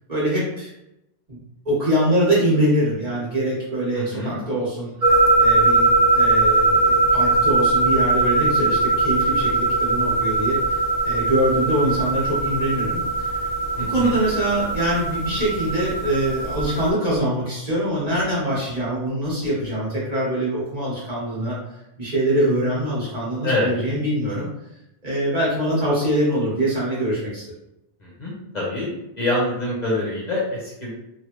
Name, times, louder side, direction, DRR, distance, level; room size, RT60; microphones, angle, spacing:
voice 1, 0.1-0.7 1.3-1.4 1.6-5.1 5.4-5.9 6.1-13.3 13.9-21.6 22.0-24.5 25.0-27.5, right 1 dB, 35° right, -7 dB, 1.3 m, -23 dB
voice 2, 4.0-4.4 13.8-14.2 23.4-23.7 28.0-28.9 29.2-30.9, left 1 dB, 45° left, -5 dB, 0.8 m, -25 dB
sound 1, 5.0-16.9, right 3 dB, 80° right, 1.0 m, -20 dB
3.1 x 2.5 x 3.0 m, 0.88 s
omnidirectional pair, 1.1 m